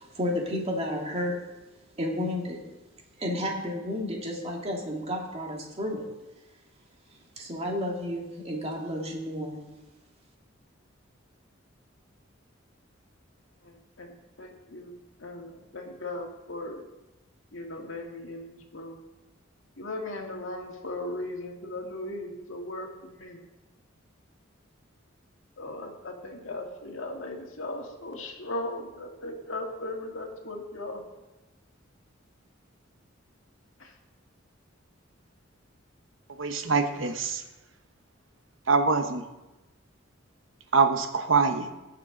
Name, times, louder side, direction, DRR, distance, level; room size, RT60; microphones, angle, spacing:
voice 1, 0.0-1.4 2.0-2.6 3.2-6.1 7.4-9.6, left 1 dB, 30° right, 0 dB, 2.1 m, -31 dB
voice 2, 13.6-14.9 15.2-16.8 17.5-19.1 19.8-23.4 25.6-31.0 33.8-33.9, left 2 dB, 80° left, 1 dB, 2.0 m, -38 dB
voice 3, 36.4-37.3 38.7-39.2 40.7-41.7, right 4 dB, 70° right, 7 dB, 1.0 m, -24 dB
18.5 x 6.8 x 3.9 m, 1.0 s
head